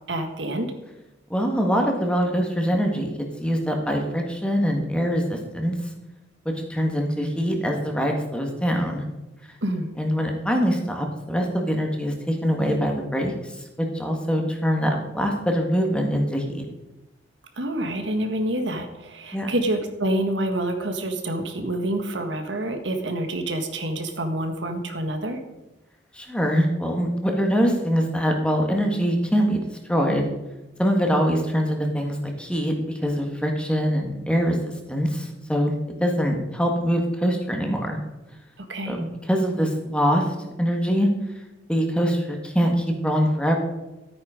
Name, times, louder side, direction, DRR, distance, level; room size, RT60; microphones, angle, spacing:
voice 1, 0.1-0.7 9.6-9.9 17.6-25.4 38.7-39.0, right 1 dB, 85° right, 6 dB, 1.7 m, -27 dB
voice 2, 1.3-3.1 3.4-5.7 6.6-9.0 10.0-13.5 13.8-16.6 19.3-19.5 26.1-29.6 29.9-30.3 30.8-35.7 36.0-38.0 38.9-40.2 40.6-41.1 41.7-43.6, equal, 5° left, 2 dB, 1.6 m, -23 dB
13.0 x 9.1 x 5.1 m, 1.0 s
head